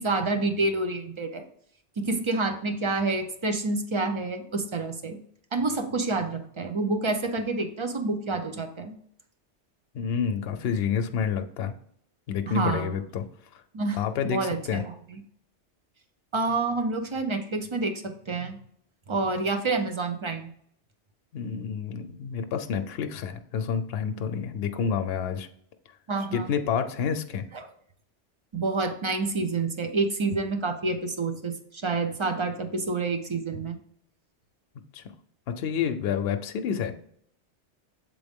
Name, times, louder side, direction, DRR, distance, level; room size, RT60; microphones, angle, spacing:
voice 1, 0.0-1.4 2.0-5.2 5.5-9.0 12.5-12.9 13.7-14.0 14.2-14.8 16.3-18.6 19.1-20.5 26.1-26.5 28.5-33.8, right 3 dB, 35° right, 6 dB, 0.6 m, -28 dB
voice 2, 9.9-11.7 12.3-13.3 13.9-14.8 21.3-25.5 26.3-27.5 34.9-35.0 35.5-36.9, left 7 dB, 65° left, 7 dB, 0.8 m, -29 dB
7.4 x 3.8 x 3.5 m, 0.65 s
omnidirectional pair, 1.2 m